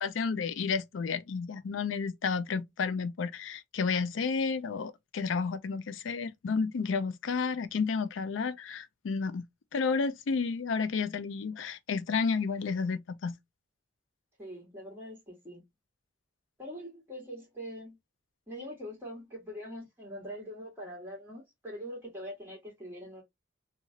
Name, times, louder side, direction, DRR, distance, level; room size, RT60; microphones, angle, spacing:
voice 1, 0.0-9.4 9.7-13.3, left 5 dB, 90° left, 0.4 m, -31 dB
voice 2, 14.4-15.6 16.6-18.0 18.5-23.2, equal, 10° right, 1.5 m, -43 dB
2.9 x 2.3 x 2.6 m
head